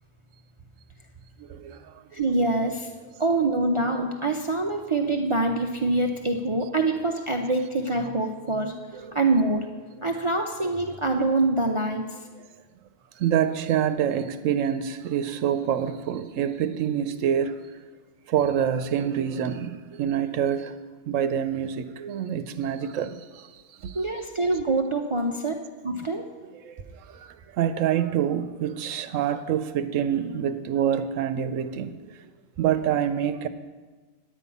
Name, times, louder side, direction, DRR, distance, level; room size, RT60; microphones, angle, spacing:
voice 1, 2.1-2.9 3.2-8.7 9.1-9.7 10.0-12.0 23.9-25.5 25.8-26.3, right 2 dB, 55° right, 0.3 m, -25 dB
voice 2, 13.2-17.6 18.3-20.7 21.1-23.4 23.8-23.9 26.6-26.7 27.1-27.2 27.6-32.0 32.6-33.5, right 9 dB, 75° right, 0.9 m, -26 dB
10.0 x 5.5 x 8.3 m
omnidirectional pair, 1.4 m